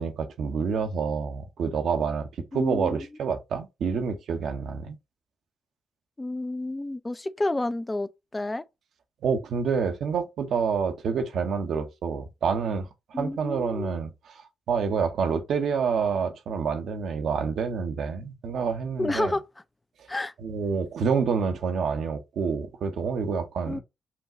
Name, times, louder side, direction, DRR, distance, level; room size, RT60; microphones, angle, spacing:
voice 1, 0.0-2.3 2.5-5.0 9.2-12.9 13.2-19.3 20.4-23.8, right 6 dB, 70° right, 0.8 m, -28 dB
voice 2, 2.5-3.1 6.2-8.6 13.1-14.0 19.0-19.4 20.1-20.3 23.7-23.8, left 2 dB, 25° left, 0.5 m, -30 dB
5.9 x 2.3 x 2.8 m
hypercardioid pair, 45°, 0 cm